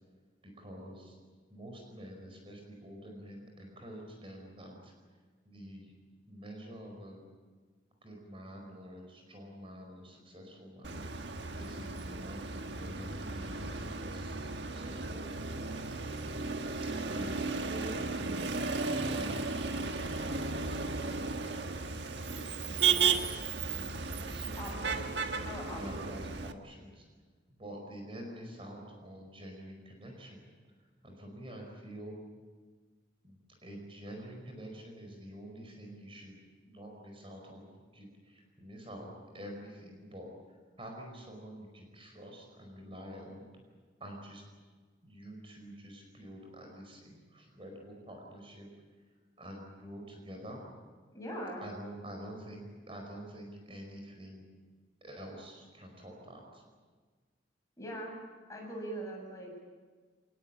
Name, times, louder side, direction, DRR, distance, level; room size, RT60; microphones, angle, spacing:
voice 1, 0.6-1.2 1.5-4.9 5.4-5.9 6.3-7.2 8.0-11.0 11.5-15.2 17.0-18.5 18.8-21.3 22.6-23.5 23.7-24.8 25.7-27.0 27.6-30.5 31.0-32.2 33.2-36.4 36.6-37.6 37.9-40.3 40.8-43.4 44.0-44.4 45.0-48.7 49.4-50.6 51.6-54.5 55.0-56.6, equal, 30° right, 2 dB, 5.0 m, -47 dB
Motor vehicle (road), 10.8-26.5, right 4 dB, 65° right, 1.5 m, -34 dB
voice 2, 24.6-25.0 25.4-26.0 51.1-51.7 57.8-58.2 58.5-59.7, right 1 dB, 15° left, -1 dB, 7.3 m, -41 dB
26.0 x 20.0 x 8.7 m, 1.5 s
head